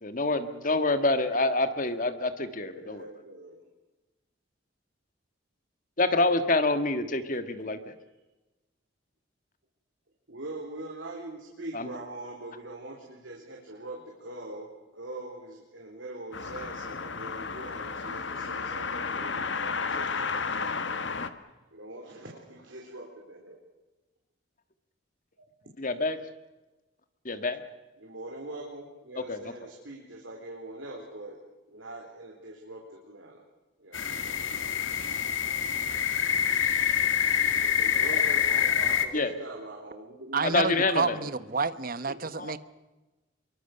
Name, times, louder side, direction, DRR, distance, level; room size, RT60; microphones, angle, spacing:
voice 1, 0.0-3.1 6.0-7.9 11.7-11.9 25.8-26.2 27.2-27.6 29.3-29.4 39.1-39.3 40.4-41.2 42.4-42.6, left 2 dB, 45° left, 9 dB, 1.6 m, -27 dB
voice 2, 2.6-3.6 10.3-14.7 14.9-20.7 21.7-23.6 25.4-25.5 28.0-31.4 31.7-33.4 33.8-34.4 37.3-40.6 42.1-42.2, right 2 dB, 80° right, -1 dB, 4.1 m, -43 dB
sound 1, 16.3-21.3, left 4 dB, 65° left, 1.5 m, -33 dB
sound 2, 33.9-39.1, left 8 dB, 85° left, 2.0 m, -26 dB
voice 3, 40.3-42.6, right 4 dB, 45° right, 14 dB, 1.0 m, -29 dB
25.5 x 23.5 x 6.8 m, 1.1 s
head